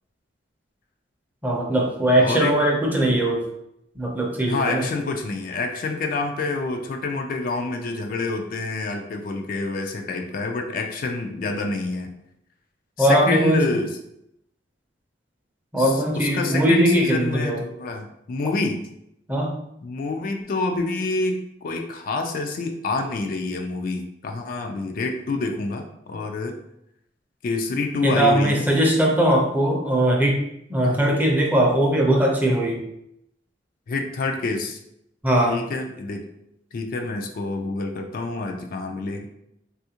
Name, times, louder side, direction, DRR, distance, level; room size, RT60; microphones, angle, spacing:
voice 1, 1.4-3.4 4.0-4.8 13.0-13.6 15.7-17.6 19.3-19.6 28.0-30.4 30.7-32.8 35.2-35.6, right 1 dB, 10° right, -2 dB, 0.5 m, -20 dB
voice 2, 2.2-2.6 4.5-12.1 13.0-13.9 15.8-18.9 19.8-26.6 27.4-28.7 30.8-31.0 33.9-34.8 35.5-36.2 36.7-39.3, left 3 dB, 50° left, 4 dB, 0.3 m, -27 dB
3.4 x 2.4 x 2.8 m, 0.78 s
head